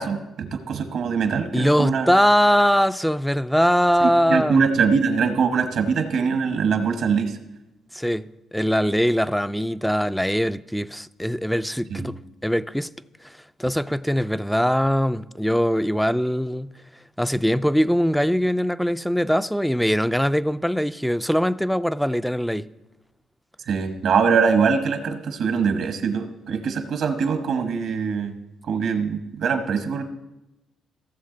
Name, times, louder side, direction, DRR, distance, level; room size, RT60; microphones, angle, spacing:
voice 1, 0.0-2.1 4.0-7.4 11.9-12.1 23.7-28.3 28.7-30.0, right 5 dB, 70° right, 1.2 m, -23 dB
voice 2, 1.5-4.6 7.9-12.9 13.2-13.3 13.6-16.7 17.2-22.7, equal, ahead, 0.3 m, -22 dB
16.0 x 7.1 x 3.9 m
cardioid pair, 90°, 0 cm